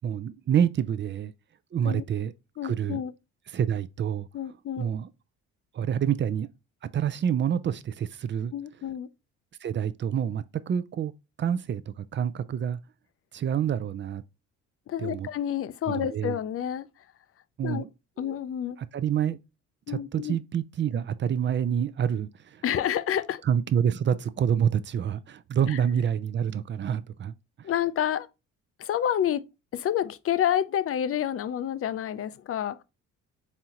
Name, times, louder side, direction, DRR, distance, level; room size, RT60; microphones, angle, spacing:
voice 1, 0.0-1.3 1.7-2.3 2.6-3.0 3.5-4.3 4.8-5.1 5.7-6.5 6.9-8.5 9.6-11.1 11.4-12.8 13.3-14.2 15.0-15.3 15.9-16.4 17.6-17.9 18.2-18.3 18.8-19.4 19.9-22.6 23.4-27.7, right 8 dB, 35° right, 0.4 m, -27 dB
voice 2, 2.6-3.1 4.3-4.9 8.5-9.1 14.9-16.9 17.6-17.9 18.2-18.8 19.9-20.4 22.6-23.4 25.7-25.8 27.6-28.3 28.8-29.4 29.7-32.8, left 10 dB, 45° left, 0.5 m, -29 dB
4.2 x 3.6 x 2.9 m
supercardioid pair, 80°, 33 cm